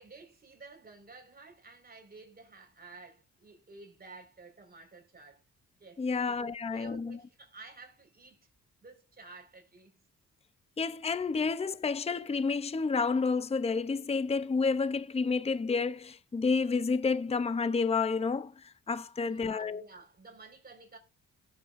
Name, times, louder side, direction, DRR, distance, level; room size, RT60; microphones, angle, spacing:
voice 1, 0.0-5.4 5.8-8.5 8.8-10.0 19.2-21.0, right 3 dB, 30° right, 4.8 m, -52 dB
voice 2, 6.0-7.2 10.8-19.8, left 4 dB, 20° left, 0.6 m, -30 dB
18.0 x 8.1 x 2.5 m
cardioid pair, 80°, 30 cm